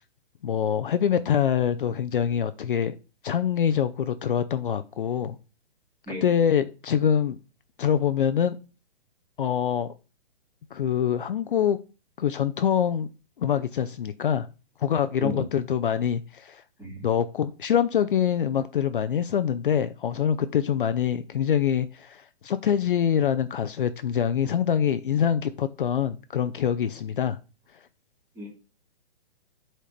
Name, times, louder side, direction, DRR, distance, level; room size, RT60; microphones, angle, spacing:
voice 1, 0.4-3.0 3.2-5.4 6.2-7.4 7.8-8.6 9.4-9.9 10.7-11.8 12.2-13.1 13.4-14.5 14.8-16.6 17.0-27.4, left 8 dB, 55° left, 11 dB, 0.6 m, -25 dB
voice 2, 6.1-6.2 15.2-15.5 16.8-17.1 28.3-28.5, equal, 5° right, -4 dB, 2.6 m, -34 dB
8.2 x 4.4 x 5.0 m, 0.33 s
hypercardioid pair, 170°, 32 cm